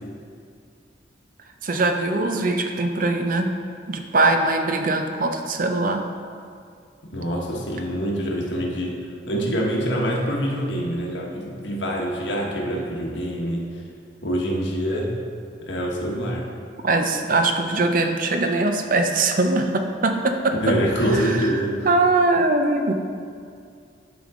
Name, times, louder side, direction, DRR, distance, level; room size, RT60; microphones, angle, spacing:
voice 1, 1.6-3.5 3.9-6.0 16.8-20.7 21.1-21.5 21.8-22.9, right 2 dB, 45° right, 5 dB, 0.6 m, -21 dB
voice 2, 7.0-9.0 9.2-13.6 14.2-15.1 15.6-16.4 20.6-21.9, equal, 75° left, -2 dB, 1.3 m, -25 dB
10.5 x 5.3 x 3.7 m, 2.3 s
head